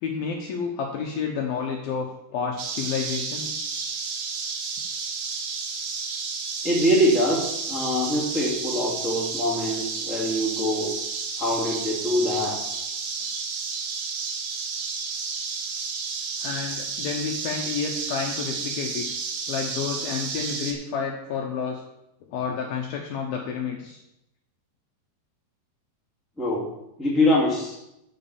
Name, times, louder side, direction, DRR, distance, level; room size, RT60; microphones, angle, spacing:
voice 1, 0.0-3.6 16.4-19.1 19.5-21.8 22.3-24.0, left 6 dB, 75° left, 1 dB, 2.3 m, -30 dB
sound 1, 2.6-20.7, right 5 dB, 65° right, 1.9 m, -31 dB
voice 2, 6.6-10.9 11.4-12.6 26.4-26.6 27.0-27.8, left 1 dB, ahead, -5 dB, 1.3 m, -24 dB
8.3 x 6.3 x 7.1 m, 0.85 s
omnidirectional pair, 5.1 m